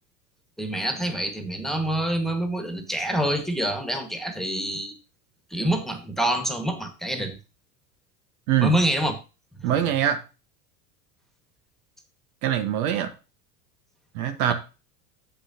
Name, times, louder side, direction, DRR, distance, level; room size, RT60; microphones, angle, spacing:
voice 1, 0.6-4.9 5.5-7.4 8.6-9.1 14.5-14.6, right 1 dB, ahead, 6 dB, 1.7 m, -26 dB
voice 2, 9.6-10.2 12.4-13.1 14.1-14.5, right 10 dB, 65° right, 8 dB, 1.4 m, -23 dB
8.7 x 7.0 x 2.8 m, 0.30 s
hypercardioid pair, 90°, 46 cm